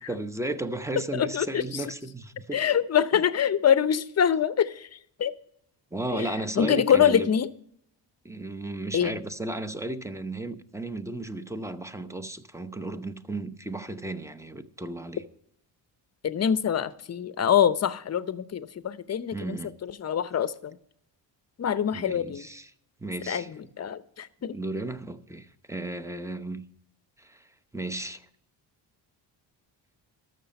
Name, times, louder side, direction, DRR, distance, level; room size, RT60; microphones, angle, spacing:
voice 1, 0.1-2.8 5.9-7.3 8.2-15.2 19.3-19.7 21.9-22.7 23.0-23.5 24.5-26.6 27.2-28.3, right 2 dB, 5° right, 11 dB, 0.7 m, -34 dB
voice 2, 1.1-1.8 2.5-5.3 6.1-6.3 6.6-7.5 8.9-9.2 16.2-20.8 21.6-22.4 23.3-23.4 23.8-24.5, left 8 dB, 35° left, 15 dB, 0.7 m, -25 dB
13.0 x 6.5 x 5.3 m, 0.69 s
cardioid pair, 85°, 45 cm